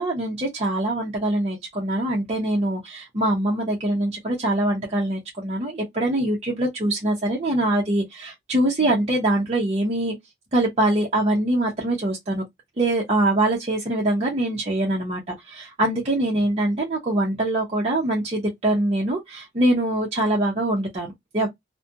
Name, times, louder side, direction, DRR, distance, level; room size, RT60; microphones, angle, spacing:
voice 1, 0.0-10.2 10.5-12.4 12.8-21.5, right 1 dB, 35° right, 0.7 m, -23 dB
2.4 x 2.1 x 2.7 m
head